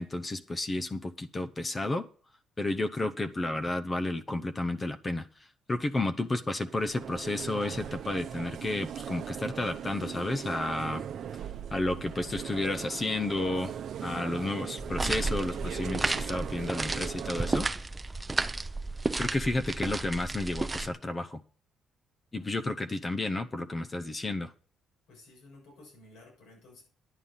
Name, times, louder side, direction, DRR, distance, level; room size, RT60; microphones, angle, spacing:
voice 1, 0.0-2.1 2.6-5.3 5.7-11.0 11.7-13.7 14.0-17.7 19.2-21.4 22.3-24.5, left 2 dB, 25° left, 0.8 m, -31 dB
sound 1, 6.6-17.6, right 8 dB, 65° right, 0.7 m, -39 dB
sound 2, 14.8-20.9, right 2 dB, 20° right, 0.6 m, -32 dB
voice 2, 25.1-26.8, left 2 dB, 90° left, 7.2 m, -54 dB
11.0 x 8.6 x 5.7 m
cardioid pair, 90°, 0 cm